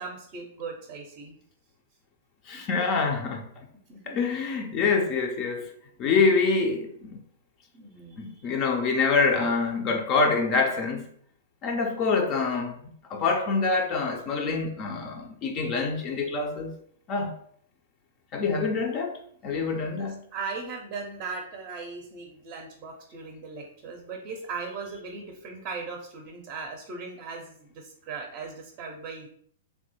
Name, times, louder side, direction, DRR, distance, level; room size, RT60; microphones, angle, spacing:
voice 1, 0.0-1.4 2.5-2.7 3.9-4.2 7.7-8.7 19.8-29.3, right 4 dB, 35° right, 0.5 m, -38 dB
voice 2, 2.5-3.5 4.1-5.7 6.0-7.2 8.2-11.1 11.6-12.7 13.1-16.7 17.1-17.3 18.3-19.2 19.4-20.2, left 4 dB, 35° left, 0.4 m, -25 dB
3.1 x 2.1 x 3.0 m
hypercardioid pair, 125°, 0 cm